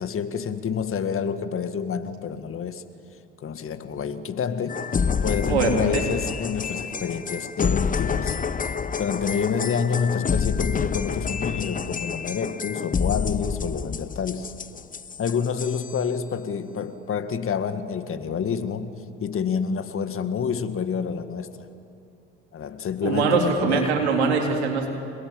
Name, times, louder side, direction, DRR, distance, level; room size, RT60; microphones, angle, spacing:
voice 1, 0.0-2.8 3.4-4.8 5.2-8.4 9.0-14.5 15.2-18.9 19.2-21.7 22.5-23.9, left 6 dB, 40° left, 10 dB, 1.8 m, -28 dB
sound 1, 4.7-16.0, left 6 dB, 25° left, 1.0 m, -28 dB
voice 2, 5.5-6.0 23.0-24.9, right 5 dB, 85° right, 2 dB, 3.6 m, -22 dB
28.0 x 19.5 x 8.9 m, 2.6 s
hypercardioid pair, 65°, 32 cm